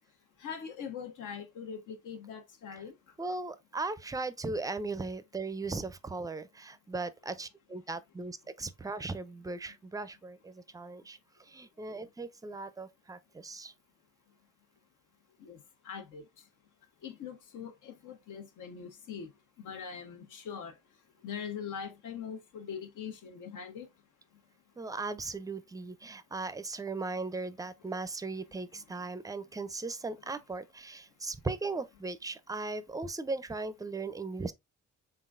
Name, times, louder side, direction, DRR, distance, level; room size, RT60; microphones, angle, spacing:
voice 1, 0.4-2.9 15.4-16.2 17.0-19.3 19.6-20.8 21.2-23.9 28.7-28.8, left 7 dB, 75° left, 1.1 m, -42 dB
voice 2, 3.2-11.2 11.5-13.7 24.8-34.5, right 3 dB, 10° right, 0.4 m, -38 dB
3.9 x 3.7 x 2.5 m
cardioid pair, 90°, 30 cm